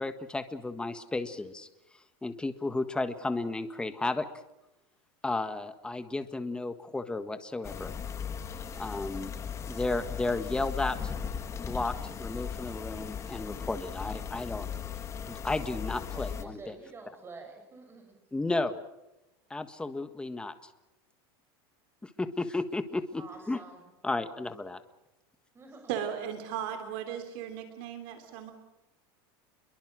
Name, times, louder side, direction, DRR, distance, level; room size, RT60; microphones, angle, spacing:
voice 1, 0.0-1.7 2.2-4.3 5.2-7.9 8.8-9.3 9.6-11.0 11.6-14.7 15.3-16.7 18.3-18.8 19.5-20.5 22.0-23.6 24.0-24.8, left 2 dB, 5° left, 9 dB, 1.5 m, -33 dB
sound 1, 7.6-16.4, left 7 dB, 20° left, 1.7 m, -37 dB
voice 2, 16.1-18.2 23.2-23.9 25.5-25.9, right 3 dB, 20° right, 3 dB, 7.6 m, -48 dB
voice 3, 25.9-28.5, right 9 dB, 60° right, 6 dB, 3.4 m, -36 dB
29.0 x 23.0 x 6.3 m, 0.95 s
supercardioid pair, 145°, 13 cm